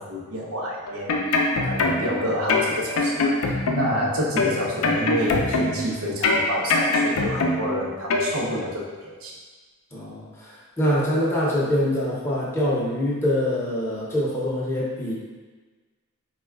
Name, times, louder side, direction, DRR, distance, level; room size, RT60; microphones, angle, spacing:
voice 1, 0.0-9.4, equal, 75° right, -3 dB, 0.6 m, -29 dB
sound 1, 0.9-2.2 2.5-4.0 4.4-5.9 6.2-7.8 8.1-8.3, left 3 dB, 75° left, 0.4 m, -22 dB
voice 2, 9.9-10.2 10.8-15.1, equal, 10° left, -7 dB, 0.6 m, -24 dB
4.0 x 2.2 x 2.2 m, 1.3 s
head